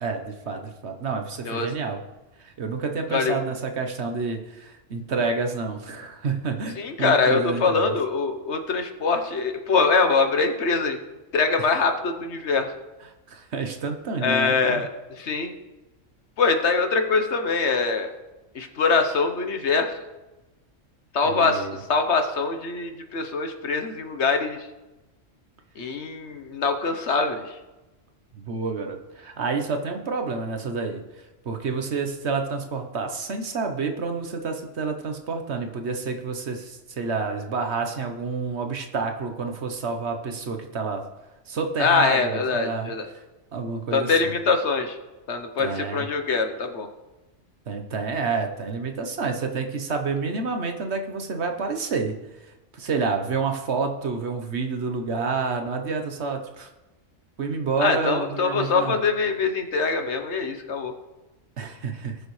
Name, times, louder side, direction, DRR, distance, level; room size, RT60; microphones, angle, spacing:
voice 1, 0.0-2.0 2.4-7.9 13.3-14.9 21.2-21.8 28.3-31.0 31.4-41.0 41.5-42.9 43.5-44.1 45.6-46.0 47.7-52.2 52.7-56.7 57.4-59.0 61.6-62.2, right 4 dB, 60° right, 5 dB, 1.3 m, -29 dB
voice 2, 6.8-11.0 11.3-12.7 14.2-14.9 15.2-15.5 16.4-18.1 18.5-20.0 21.1-24.6 25.8-27.6 41.8-43.1 43.9-45.0 45.3-46.9 57.8-60.9, left 4 dB, 65° left, 6 dB, 1.2 m, -23 dB
19.0 x 6.6 x 3.2 m, 1.1 s
omnidirectional pair, 1.3 m